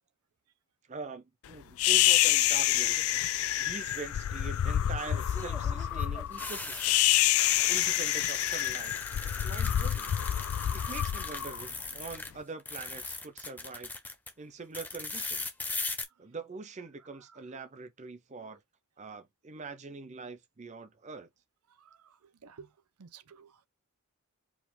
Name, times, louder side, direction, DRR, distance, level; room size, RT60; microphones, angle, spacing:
voice 1, 0.9-3.1 3.6-7.0 7.7-8.9 9.2-10.2 10.5-13.9 14.4-15.5 16.2-18.6 19.0-21.3, right 4 dB, 30° right, 0.6 m, -43 dB
sound 1, 1.8-12.2, left 13 dB, 70° left, 0.3 m, -27 dB
sound 2, 2.7-3.2 5.0-12.3 12.6-14.3 14.7-16.0, left 3 dB, 10° left, 0.6 m, -39 dB
voice 2, 21.8-22.1 22.4-22.7 23.0-23.7, right 6 dB, 90° right, 0.6 m, -52 dB
4.8 x 2.4 x 3.6 m
head